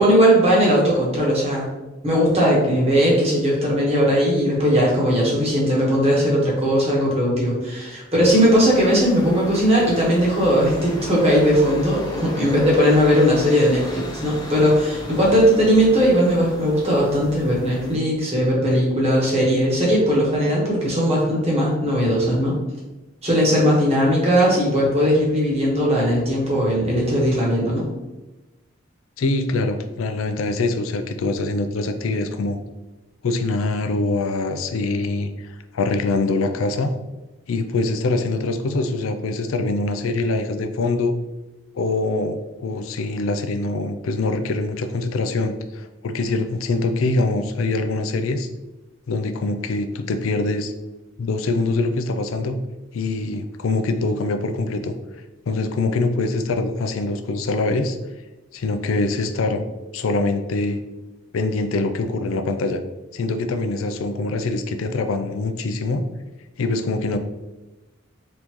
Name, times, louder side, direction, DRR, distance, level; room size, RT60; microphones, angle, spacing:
voice 1, 0.0-1.7 2.0-22.6 23.2-27.8, equal, 30° right, -4 dB, 1.2 m, -18 dB
sound 1, 8.3-17.9, left 1 dB, 20° left, 0.5 m, -37 dB
voice 2, 29.2-32.6 33.2-36.9 37.5-41.2 41.8-48.5 49.1-50.7 51.2-52.6 52.9-55.0 55.5-58.0 58.5-59.6 59.9-60.8 61.3-62.8 63.1-66.0 66.6-67.2, left 3 dB, 75° left, 8 dB, 0.4 m, -24 dB
3.8 x 3.6 x 3.0 m, 1.1 s
head